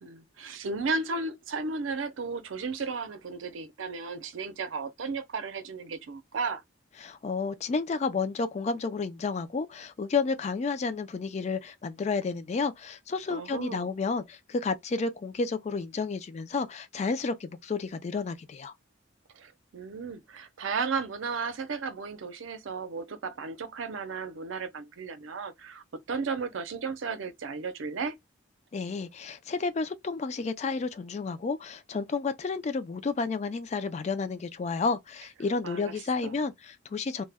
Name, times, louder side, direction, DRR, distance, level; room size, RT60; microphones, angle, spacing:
voice 1, 0.0-6.6 13.3-13.9 19.3-28.2 35.6-35.9 36.2-36.3, right 4 dB, 85° right, 0.5 m, -34 dB
voice 2, 7.0-18.7 28.7-37.2, left 4 dB, 35° left, 0.3 m, -31 dB
2.1 x 2.1 x 3.3 m
head